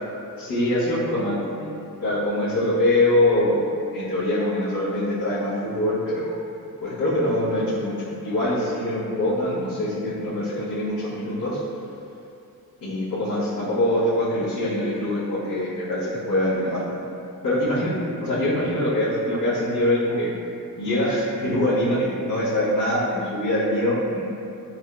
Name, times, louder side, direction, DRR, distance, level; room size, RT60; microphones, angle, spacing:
voice 1, 0.3-1.7 2.0-3.7 3.9-6.4 6.8-11.6 12.8-17.0 17.4-17.9 18.2-20.3 20.8-24.2, left 1 dB, 75° left, -14 dB, 1.1 m, -24 dB
4.9 x 2.3 x 2.5 m, 2.6 s
wide cardioid pair, 125°, 37 cm